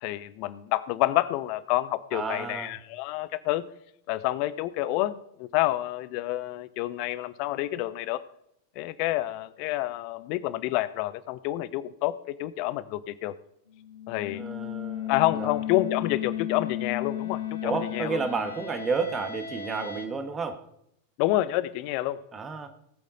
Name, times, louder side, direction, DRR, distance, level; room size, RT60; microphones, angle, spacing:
voice 1, 0.0-3.6 4.1-8.2 8.8-13.3 14.1-14.4 15.1-18.2 21.2-22.2, left 16 dB, 45° left, 16 dB, 0.8 m, -28 dB
voice 2, 2.1-2.7 14.3-15.5 17.6-20.6 22.3-22.7, right 4 dB, 20° right, 8 dB, 1.7 m, -31 dB
sound 1, 13.8-20.1, left 10 dB, 75° left, 1.5 m, -34 dB
18.5 x 8.3 x 4.2 m, 0.74 s
figure-of-eight pair, 90°, 0 cm